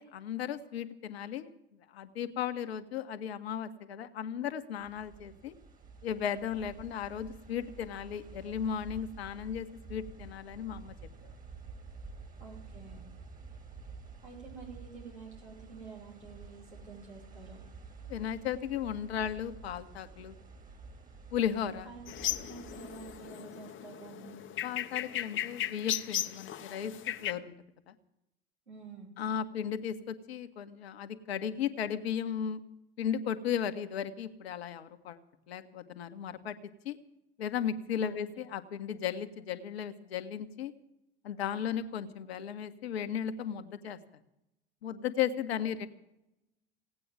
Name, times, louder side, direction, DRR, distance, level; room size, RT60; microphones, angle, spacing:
voice 1, 0.0-1.5 1.9-5.5 6.0-10.9 11.2-11.3 18.1-20.3 21.3-21.9 24.6-26.9 27.2-27.5 27.9-28.0 29.2-32.6 33.0-35.2 35.5-36.6 36.8-37.0 37.4-40.7 41.2-44.0 44.8-45.9, left 8 dB, 70° left, 10 dB, 1.3 m, -35 dB
sound 1, 4.8-23.3, right 4 dB, 25° right, 2.7 m, -50 dB
voice 2, 12.4-13.1 14.2-17.6 21.8-22.1 22.4-24.4 28.7-29.1 38.0-38.5 45.6-45.9, right 5 dB, 85° right, -4 dB, 5.2 m, -49 dB
sound 2, 22.1-27.3, left 11 dB, 40° left, 1.0 m, -36 dB
17.5 x 9.0 x 9.2 m, 0.86 s
figure-of-eight pair, 65°, 32 cm